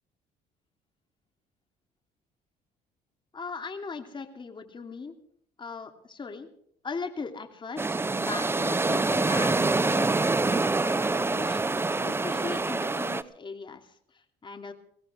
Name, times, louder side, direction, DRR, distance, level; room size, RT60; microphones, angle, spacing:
voice 1, 3.3-5.1 5.6-6.5 6.8-14.7, left 4 dB, 30° left, 6 dB, 2.9 m, -39 dB
sound 1, 7.8-13.2, right 3 dB, 15° right, 0.8 m, -26 dB
23.0 x 17.0 x 3.6 m, 0.65 s
cardioid pair, 110°, 17 cm